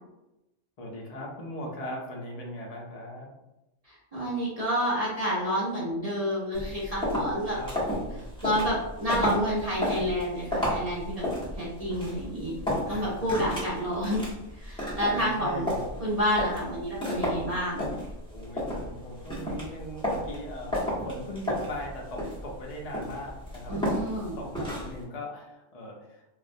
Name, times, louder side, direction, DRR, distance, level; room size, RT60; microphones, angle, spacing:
voice 1, 0.8-3.3 7.5-8.2 12.9-13.3 15.0-15.8 18.3-24.0 24.4-26.3, equal, 55° left, -1 dB, 0.4 m, -39 dB
voice 2, 3.8-7.6 8.4-11.2 11.6-12.5 12.9-14.2 14.5-15.7 16.0-17.8 23.7-24.4, equal, 40° right, -7 dB, 0.6 m, -29 dB
sound 1, 6.5-25.0, equal, 5° left, 0.5 m, -33 dB
2.4 x 2.0 x 2.5 m, 0.97 s
omnidirectional pair, 1.3 m